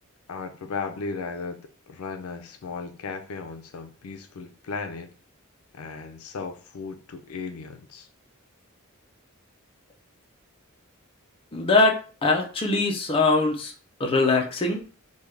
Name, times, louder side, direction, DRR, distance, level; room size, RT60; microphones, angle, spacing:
voice 1, 0.3-5.1 5.7-8.1, left 4 dB, 80° left, 7 dB, 0.4 m, -36 dB
voice 2, 11.5-13.7 14.0-14.8, left 3 dB, 25° left, 1 dB, 0.5 m, -22 dB
3.4 x 2.2 x 3.2 m, 0.37 s
head